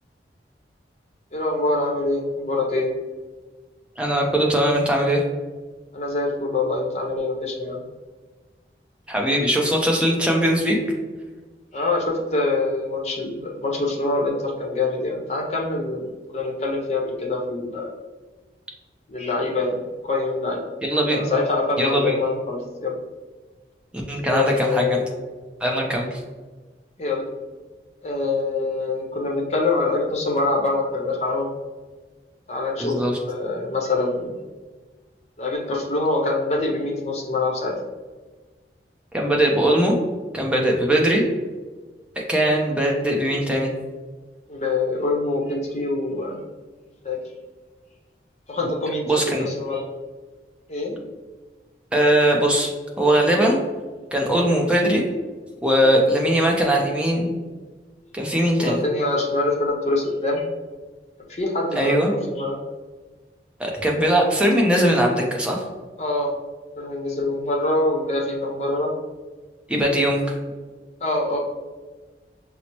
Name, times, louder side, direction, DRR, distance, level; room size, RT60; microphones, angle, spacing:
voice 1, 1.3-2.9 5.9-7.8 11.7-16.1 16.3-17.9 19.1-19.8 20.0-20.6 21.1-22.9 24.2-25.0 27.0-27.2 28.0-31.5 32.5-33.0 33.3-34.4 35.4-37.7 44.5-46.4 47.0-47.2 48.5-49.8 50.7-51.0 58.6-60.4 61.3-62.6 66.0-66.3 66.8-68.9 71.0-71.4, left 2 dB, 40° left, -1 dB, 0.7 m, -25 dB
voice 2, 4.0-5.2 9.1-10.8 20.8-21.3 21.8-22.1 24.1-25.0 25.6-26.2 32.8-33.1 39.1-40.0 40.3-41.2 42.2-43.7 49.1-49.4 51.9-52.7 53.0-53.6 54.1-55.0 55.6-57.3 58.1-58.8 61.8-62.1 63.6-65.6 69.7-70.4, right 1 dB, 5° right, -1 dB, 0.5 m, -20 dB
5.5 x 2.0 x 2.9 m, 1.3 s
head